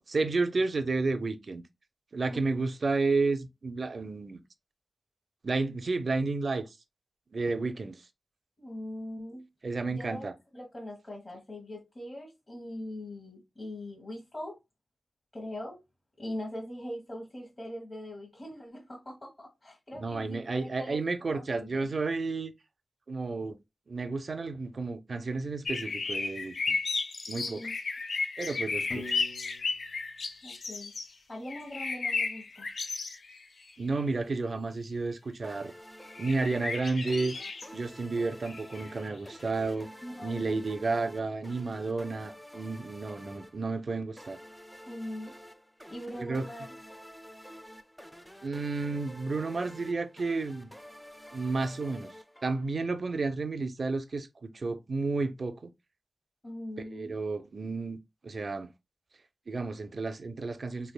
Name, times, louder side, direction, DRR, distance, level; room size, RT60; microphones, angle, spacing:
voice 1, 0.1-1.6 2.1-4.4 5.4-6.6 7.3-8.0 9.6-10.3 20.0-22.5 23.1-23.6 23.9-26.8 27.3-27.7 28.4-29.2 33.8-35.7 36.2-37.3 37.7-39.9 40.2-44.4 46.2-46.5 48.4-50.7 51.3-52.1 52.4-55.7 56.9-58.7 59.5-60.9, right 3 dB, 60° right, 0.5 m, -31 dB
voice 2, 2.3-2.6 8.6-9.5 9.9-14.6 15.3-15.8 16.2-21.0 21.3-21.9 27.3-27.8 30.4-30.9 31.3-32.7 40.0-40.6 44.9-45.4 45.9-46.8 56.4-57.1, left 1 dB, 35° left, 1.2 m, -41 dB
sound 1, 25.7-31.1 31.5-33.4 33.7-33.8 36.1-37.7 38.2-38.9 39.5-39.7, left 4 dB, 90° left, 0.6 m, -34 dB
Piano, 28.9-31.1, left 2 dB, 60° left, 1.1 m, -46 dB
sound 2, 35.4-52.9, equal, ahead, 0.6 m, -50 dB
3.6 x 3.3 x 2.2 m
wide cardioid pair, 100°, 0 cm